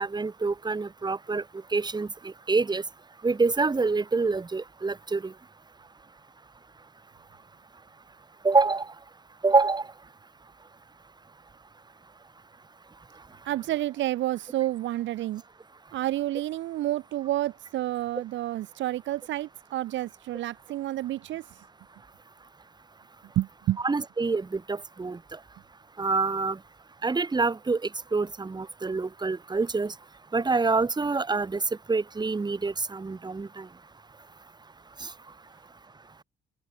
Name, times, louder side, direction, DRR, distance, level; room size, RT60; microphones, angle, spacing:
voice 1, 0.0-1.4 1.7-2.1 2.5-2.8 3.2-5.3 8.4-8.8 9.4-9.8 23.8-25.2 26.0-26.6 27.0-27.8 28.1-29.9 30.3-31.6 31.9-33.7, right 4 dB, 20° right, 1.2 m, -26 dB
voice 2, 13.5-15.4 15.9-21.4 23.4-23.8, right 14 dB, 70° right, 0.5 m, -29 dB
open air
cardioid pair, 90°, 20 cm